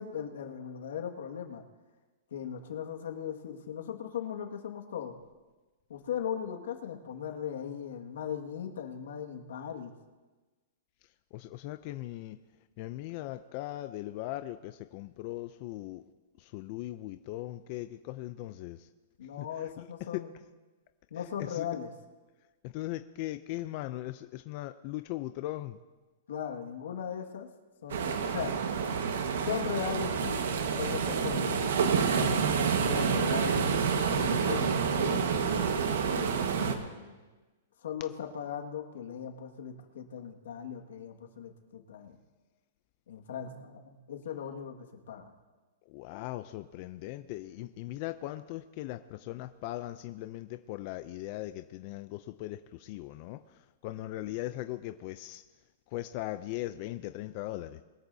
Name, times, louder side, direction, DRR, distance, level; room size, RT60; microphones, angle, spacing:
voice 1, 0.0-1.6 2.3-5.2 5.9-9.9 19.2-20.3 21.1-21.9 26.3-27.5 27.8-28.6 29.4-35.3 36.0-37.2 37.8-42.2 43.1-45.3, left 8 dB, 80° left, 3 dB, 1.8 m, -38 dB
voice 2, 11.3-12.4 12.8-16.0 16.4-18.9 19.4-19.5 20.1-20.2 21.4-21.6 22.6-25.8 45.9-55.4 55.9-57.8, left 16 dB, 35° left, 10 dB, 0.4 m, -39 dB
sound 1, 27.9-36.7, right 6 dB, 75° right, 1.4 m, -28 dB
22.5 x 13.0 x 2.7 m, 1.2 s
hypercardioid pair, 165°, 0 cm